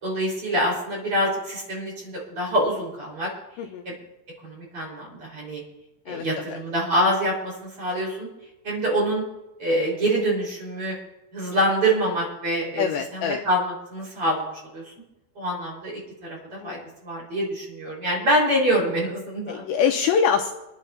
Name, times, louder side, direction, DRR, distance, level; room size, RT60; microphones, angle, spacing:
voice 1, 0.0-3.3 3.9-4.0 4.4-5.6 6.1-8.3 8.6-9.2 9.6-11.0 11.3-14.9 15.4-19.7, right 1 dB, 30° right, -4 dB, 5.3 m, -25 dB
voice 2, 6.1-6.6 12.8-13.4 16.6-16.8 19.5-20.5, left 7 dB, 80° left, 3 dB, 2.8 m, -24 dB
28.5 x 10.5 x 2.8 m, 0.97 s
omnidirectional pair, 5.5 m